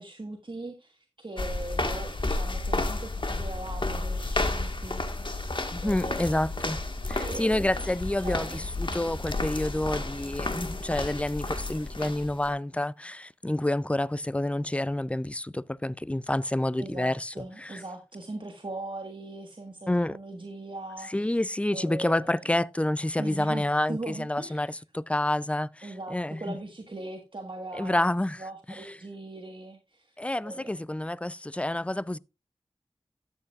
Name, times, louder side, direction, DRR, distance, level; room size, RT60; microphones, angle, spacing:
voice 1, 0.0-5.0 5.8-6.5 7.2-8.7 16.8-21.3 21.7-22.4 23.2-23.6 23.9-24.8 25.8-28.0 28.4-30.2 30.4-30.7, right 2 dB, 50° right, 1.4 m, -40 dB
sound 1, 1.4-12.5, left 2 dB, 50° left, 1.5 m, -32 dB
voice 2, 5.7-6.8 7.1-17.8 19.9-20.2 21.1-26.5 27.8-28.4 28.7-28.8 30.2-32.2, left 1 dB, 10° left, 0.4 m, -29 dB
13.0 x 8.3 x 2.4 m
wide cardioid pair, 40°, 11 cm